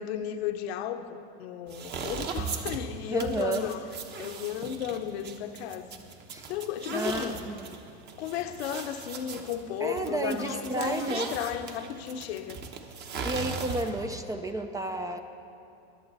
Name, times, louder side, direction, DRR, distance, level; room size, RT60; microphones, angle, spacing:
voice 1, 0.0-3.9 4.2-6.0 6.5-7.4 8.2-12.7, left 10 dB, 75° left, 0.9 m, -34 dB
sound 1, 1.7-14.1, right 5 dB, 30° right, 1.0 m, -38 dB
voice 2, 3.1-3.7 6.3-6.4 6.9-7.7 9.8-11.3 13.2-15.2, right 2 dB, 10° right, 0.3 m, -32 dB
22.5 x 7.9 x 4.0 m
supercardioid pair, 130°, 32 cm